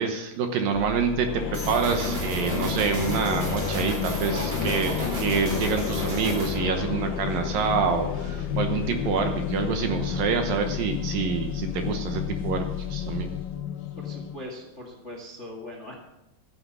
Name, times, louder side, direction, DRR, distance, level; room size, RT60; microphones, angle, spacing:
voice 1, 0.0-13.3, right 6 dB, 70° right, 5 dB, 2.5 m, -27 dB
sound 1, 0.7-13.9 14.2-14.4, left 10 dB, 50° left, 2.1 m, -36 dB
sound 2, 1.2-14.5, left 8 dB, 65° left, 2.3 m, -32 dB
sound 3, 1.5-6.6, right 1 dB, 45° right, 5.3 m, -33 dB
voice 2, 14.0-15.9, left 1 dB, 30° left, 1 dB, 1.2 m, -40 dB
13.5 x 10.0 x 6.1 m, 0.90 s
omnidirectional pair, 4.8 m